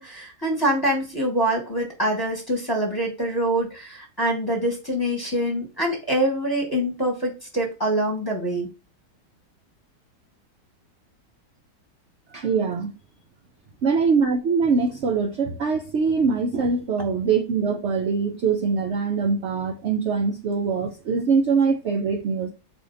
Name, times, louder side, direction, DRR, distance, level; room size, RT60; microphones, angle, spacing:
voice 1, 0.0-8.7, right 1 dB, 15° left, 1.0 m, -25 dB
voice 2, 12.3-12.9 13.8-22.5, right 5 dB, 75° right, 0.6 m, -23 dB
4.3 x 2.8 x 3.7 m
omnidirectional pair, 1.9 m